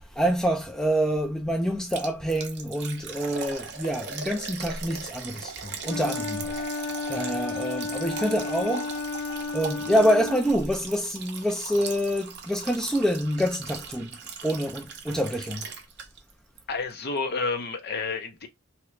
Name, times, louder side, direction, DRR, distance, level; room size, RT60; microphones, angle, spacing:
voice 1, 0.2-8.9 9.5-14.2 14.4-15.6, equal, 5° left, 0.3 m, -26 dB
Liquid, 1.9-16.3 16.6-16.7 17.2-17.3, right 6 dB, 50° right, 0.6 m, -39 dB
Wind instrument woodwind instrument, 5.8-10.5, left 4 dB, 70° left, 1.3 m, -33 dB
voice 2, 16.7-18.5, left 4 dB, 45° left, 0.6 m, -30 dB
2.8 x 2.3 x 3.1 m
head